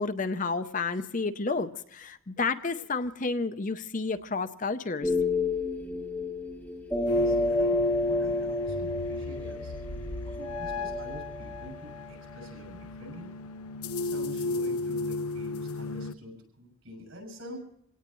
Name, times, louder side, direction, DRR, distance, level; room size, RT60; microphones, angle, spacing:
voice 1, 0.0-5.1, left 4 dB, 35° left, 10 dB, 0.6 m, -31 dB
sound 1, 5.0-12.2, left 2 dB, 5° left, 0.9 m, -31 dB
voice 2, 6.9-9.7 10.2-13.3 14.0-17.6, equal, 70° right, 2 dB, 7.5 m, -46 dB
sound 2, 7.1-16.1, left 3 dB, 85° left, 0.6 m, -33 dB
27.0 x 17.5 x 3.0 m, 0.72 s
head